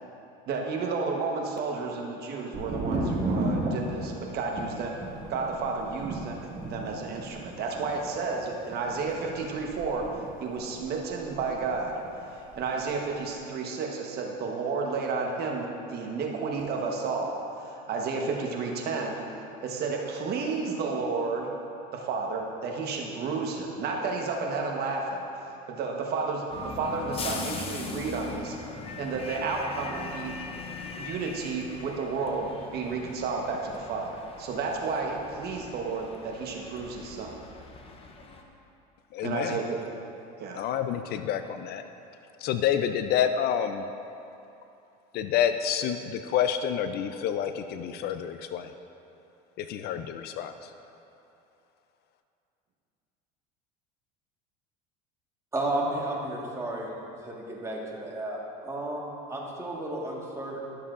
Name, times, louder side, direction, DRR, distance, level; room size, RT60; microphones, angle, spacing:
voice 1, 0.5-10.1 10.4-11.9 12.3-19.2 19.6-21.5 21.9-25.2 25.7-28.6 29.0-30.3 31.0-37.4 39.2-39.9 40.4-40.6, right 4 dB, 50° right, 1 dB, 1.1 m, -32 dB
Thunder, 2.5-12.2 12.4-13.2, right 2 dB, 30° right, 1.6 m, -35 dB
sound 1, 26.5-38.4, left 4 dB, 25° left, 0.8 m, -40 dB
voice 2, 39.1-39.6 40.6-41.8 42.4-43.8 45.1-48.7 49.7-50.5, left 9 dB, 50° left, 9 dB, 0.4 m, -28 dB
voice 3, 55.5-56.9 57.2-60.8, right 1 dB, 15° right, -3 dB, 1.5 m, -33 dB
12.5 x 7.1 x 2.5 m, 2.8 s
supercardioid pair, 100°, 21 cm